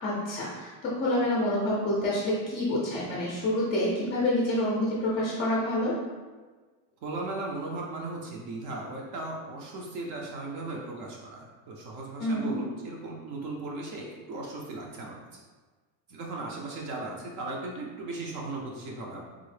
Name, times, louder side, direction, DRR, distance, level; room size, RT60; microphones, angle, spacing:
voice 1, 0.0-5.9 12.2-12.5, left 1 dB, 25° left, -6 dB, 0.4 m, -27 dB
voice 2, 7.0-15.4 16.1-19.3, right 2 dB, 55° right, -1 dB, 0.5 m, -37 dB
3.6 x 2.0 x 3.1 m, 1.4 s
cardioid pair, 170°, 47 cm